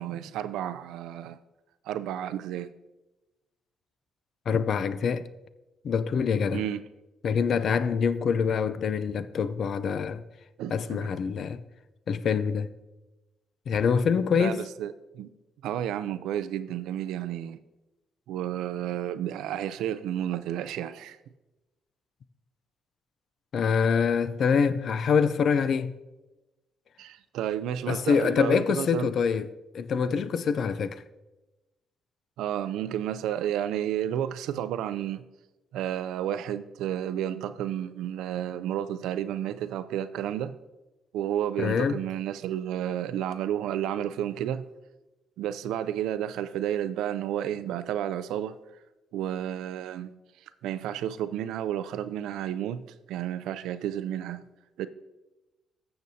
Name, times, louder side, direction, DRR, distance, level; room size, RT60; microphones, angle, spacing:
voice 1, 0.0-1.4 1.9-2.7 6.5-6.8 10.6-11.1 14.3-15.3 15.6-17.6 18.3-21.2 27.0-29.1 32.4-35.2 35.7-40.5 41.1-44.6 45.4-48.6 49.1-50.2 50.6-52.8 53.1-54.4 54.8-54.9, right 10 dB, 90° right, 0.4 m, -31 dB
voice 2, 4.5-5.3 5.8-6.6 7.2-10.2 10.7-11.6 12.1-12.7 13.7-14.6 23.5-26.0 27.9-29.5 29.7-31.0 41.6-42.0, left 6 dB, 60° left, 0.4 m, -25 dB
15.0 x 6.9 x 2.7 m
cardioid pair, 90°, 0 cm